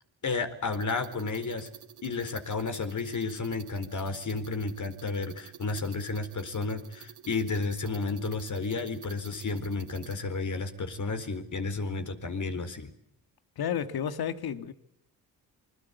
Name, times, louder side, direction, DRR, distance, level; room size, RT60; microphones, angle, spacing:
voice 1, 0.2-1.7 2.0-12.9, left 3 dB, 45° left, 4.3 m, -32 dB
sound 1, 0.7-10.2, right 10 dB, 70° right, 3.0 m, -51 dB
voice 2, 13.6-14.7, left 8 dB, 65° left, 2.0 m, -31 dB
28.0 x 22.0 x 8.3 m
supercardioid pair, 65°, 40 cm